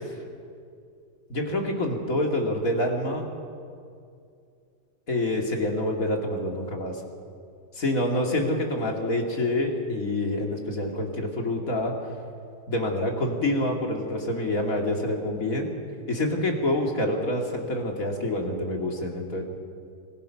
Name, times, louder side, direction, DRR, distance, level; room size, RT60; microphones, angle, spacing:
voice 1, 1.3-3.3 5.1-6.9 7.7-11.9 12.7-15.7 16.1-19.4, left 1 dB, 50° left, 1 dB, 2.9 m, -27 dB
25.0 x 20.0 x 5.9 m, 2.4 s
omnidirectional pair, 1.9 m